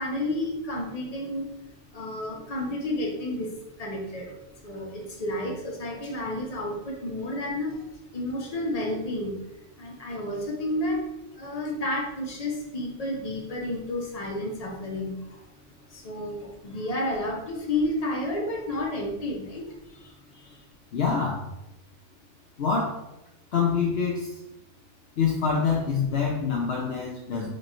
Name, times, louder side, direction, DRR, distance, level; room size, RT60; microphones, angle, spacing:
voice 1, 0.0-1.5 1.9-3.5 3.8-4.4 4.6-7.9 8.1-11.0 11.3-15.5 15.9-20.6, left 1 dB, 35° left, -1 dB, 1.0 m, -31 dB
voice 2, 20.9-21.4 22.6-23.0 23.5-24.3 25.2-27.5, left 5 dB, 65° left, -1 dB, 0.8 m, -25 dB
4.3 x 2.9 x 4.3 m, 0.92 s
omnidirectional pair, 1.2 m